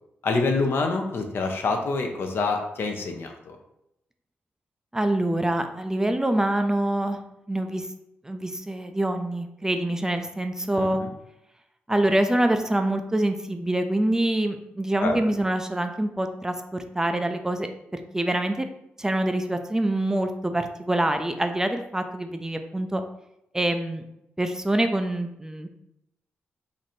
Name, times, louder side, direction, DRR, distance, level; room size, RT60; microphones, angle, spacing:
voice 1, 0.2-3.6 10.8-11.1 15.0-15.2, left 3 dB, 65° left, 4 dB, 0.6 m, -26 dB
voice 2, 4.9-7.2 7.5-7.9 8.2-11.0 11.9-18.7 19.0-23.0 23.5-24.0 24.4-25.7, right 1 dB, 15° right, 6 dB, 0.4 m, -25 dB
3.1 x 2.6 x 4.1 m, 0.83 s
cardioid pair, 85°, 4 cm